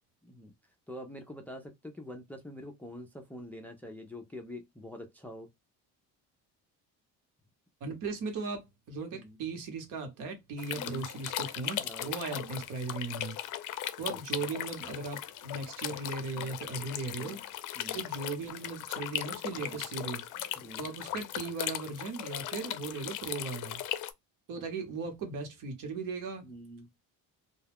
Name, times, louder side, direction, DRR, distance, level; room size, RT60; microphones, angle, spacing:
voice 1, 0.2-0.5 0.9-5.5 9.1-9.4 10.7-11.1 11.8-12.6 14.1-14.5 17.1-17.4 17.8-18.0 19.5-19.9 20.6-20.9 24.5-24.6 26.4-26.9, equal, 5° left, 0.4 m, -46 dB
voice 2, 7.8-13.4 14.0-17.4 17.9-20.2 20.8-23.8 24.5-26.5, right 4 dB, 70° right, 1.0 m, -37 dB
sound 1, 10.6-24.1, left 12 dB, 65° left, 0.5 m, -38 dB
2.3 x 2.2 x 3.4 m
cardioid pair, 130°, 33 cm